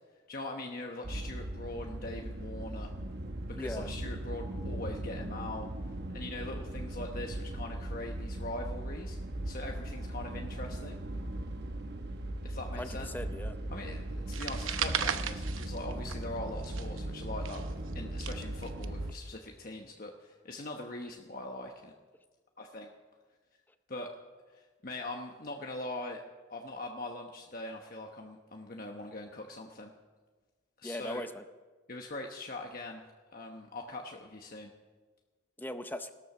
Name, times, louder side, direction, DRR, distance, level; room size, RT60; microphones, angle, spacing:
voice 1, 0.3-2.9 3.5-5.7 6.1-9.2 9.4-11.0 12.4-13.1 13.7-21.9 22.6-22.9 23.9-24.2 24.5-26.2 26.5-29.9 30.8-31.2 31.9-33.0 33.3-34.7, left 2 dB, 45° left, 2 dB, 1.1 m, -42 dB
sound 1, 1.0-19.1, right 1 dB, 55° right, 1.0 m, -38 dB
voice 2, 3.5-3.9 12.8-13.6 30.8-31.4 35.6-36.1, left 1 dB, 10° left, 9 dB, 0.6 m, -39 dB
sound 2, 14.3-16.4 16.6-18.9, right 8 dB, 80° right, 0.9 m, -36 dB
18.0 x 13.5 x 6.0 m, 1.4 s
head